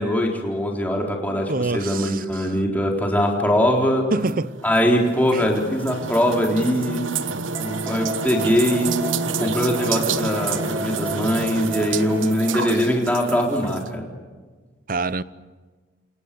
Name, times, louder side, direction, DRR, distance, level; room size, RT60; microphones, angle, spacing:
voice 1, 0.0-4.1 4.6-8.9 9.4-14.0, equal, 10° left, 4.1 m, -22 dB
voice 2, 1.3-2.6 4.1-4.5 5.3-5.4 14.9-15.2, right 3 dB, 45° right, 0.8 m, -26 dB
sound 1, 4.3-13.9, right 5 dB, 85° right, 1.1 m, -29 dB
sound 2, 7.5-13.0, right 1 dB, 15° right, 2.6 m, -34 dB
29.0 x 27.5 x 7.0 m
head